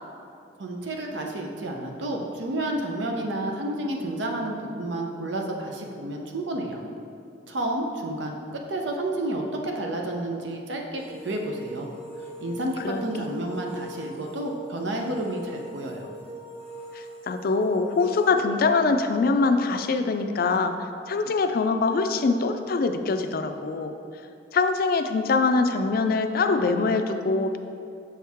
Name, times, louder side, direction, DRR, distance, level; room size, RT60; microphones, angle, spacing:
voice 1, 0.6-6.8 7.5-11.9 12.4-16.1, right 1 dB, 85° right, 1 dB, 0.7 m, -30 dB
sound 1, 10.9-18.3, right 1 dB, 35° right, 1.1 m, -41 dB
voice 2, 12.8-13.3 17.3-20.8 21.1-23.9 24.5-27.6, left 4 dB, 55° left, 7 dB, 0.4 m, -23 dB
7.1 x 4.5 x 3.5 m, 2.5 s
head